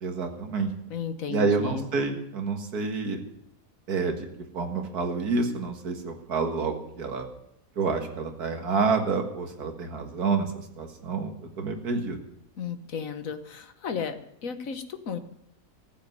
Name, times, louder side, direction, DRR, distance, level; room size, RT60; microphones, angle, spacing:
voice 1, 0.0-0.7 1.3-3.2 3.9-4.3 4.5-7.3 7.8-10.5 10.8-12.2, right 4 dB, 75° right, 4 dB, 2.2 m, -28 dB
voice 2, 0.9-1.9 12.6-15.2, left 6 dB, 60° left, 9 dB, 1.6 m, -34 dB
14.5 x 8.4 x 9.3 m, 0.77 s
omnidirectional pair, 1.7 m